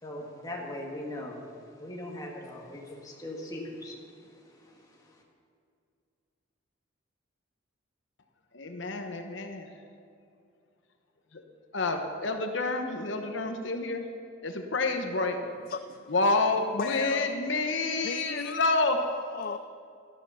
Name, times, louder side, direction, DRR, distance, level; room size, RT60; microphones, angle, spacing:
voice 1, 0.0-1.5 1.7-5.2, left 1 dB, 20° left, -1 dB, 1.9 m, -40 dB
voice 2, 8.5-9.7 11.3-11.4 11.7-14.1 14.4-15.4 16.1-19.0, left 3 dB, 60° left, 5 dB, 1.1 m, -28 dB
voice 3, 15.7-16.1 16.8-17.4 18.0-18.6 19.0-19.6, left 6 dB, 45° left, 10 dB, 0.3 m, -36 dB
13.0 x 12.5 x 5.6 m, 2.4 s
head